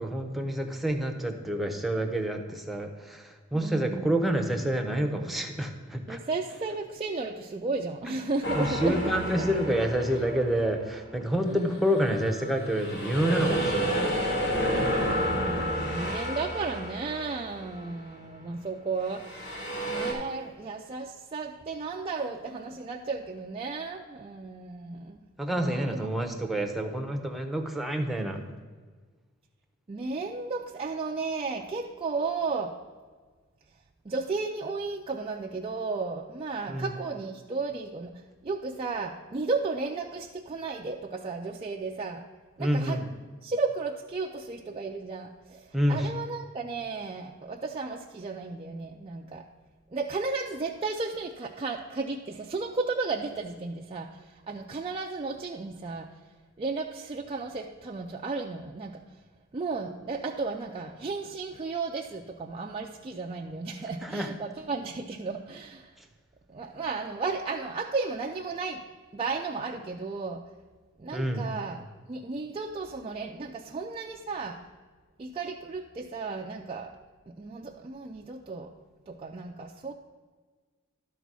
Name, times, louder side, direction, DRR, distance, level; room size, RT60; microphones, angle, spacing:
voice 1, 0.0-6.2 8.1-8.2 8.5-14.2 25.4-28.4 36.7-36.9 42.6-43.0 45.7-46.1 64.0-64.3 71.1-71.5, right 1 dB, ahead, 3 dB, 0.8 m, -28 dB
voice 2, 3.5-4.2 6.1-9.5 11.5-11.9 15.0-25.2 25.6-26.1 29.9-32.8 34.0-42.2 42.6-43.0 43.4-49.5 49.9-59.0 59.5-65.9 66.5-68.8 69.1-70.5 71.0-74.6 75.2-77.0 77.3-78.7 79.1-79.9, right 3 dB, 25° right, 0 dB, 0.4 m, -34 dB
sound 1, 8.4-10.9 11.5-17.9 19.1-20.1, equal, 60° left, 1.9 m, -31 dB
12.0 x 4.1 x 6.1 m, 1.5 s
head